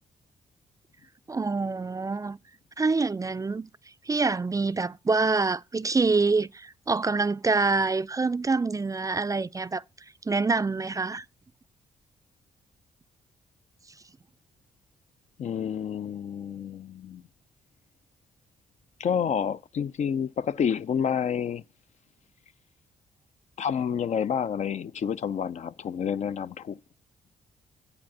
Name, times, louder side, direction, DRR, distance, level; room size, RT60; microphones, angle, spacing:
voice 1, 1.3-2.4 2.8-3.7 4.1-9.8 10.3-11.2, right 3 dB, 20° right, 0.4 m, -26 dB
voice 2, 15.4-17.2 19.0-21.6 23.6-26.8, left 7 dB, 50° left, 0.4 m, -29 dB
8.3 x 5.1 x 5.9 m
supercardioid pair, 60°, 15 cm